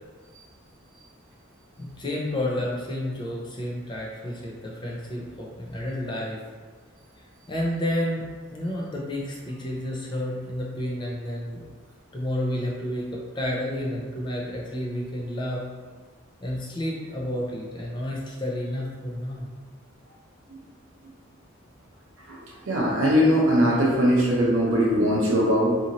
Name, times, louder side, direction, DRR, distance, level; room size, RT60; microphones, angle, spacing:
voice 1, 1.8-6.4 7.5-11.6 12.1-15.6 16.4-19.5, left 1 dB, 20° left, -3 dB, 0.4 m, -30 dB
voice 2, 22.7-25.8, equal, 70° right, -4 dB, 0.6 m, -20 dB
2.7 x 2.6 x 2.8 m, 1.4 s
head